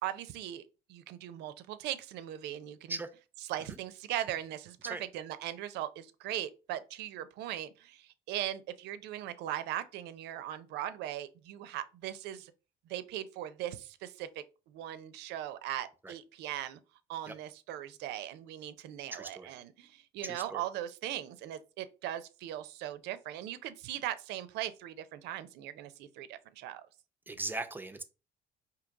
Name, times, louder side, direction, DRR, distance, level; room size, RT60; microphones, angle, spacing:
voice 1, 0.0-0.6 0.9-3.0 3.4-12.5 12.9-14.3 14.7-16.8 17.1-26.8, right 12 dB, 85° right, 0.5 m, -39 dB
voice 2, 19.1-19.5 20.2-20.6 27.3-28.0, right 2 dB, 10° right, 0.5 m, -39 dB
3.8 x 2.8 x 4.6 m
cardioid pair, 110°, 17 cm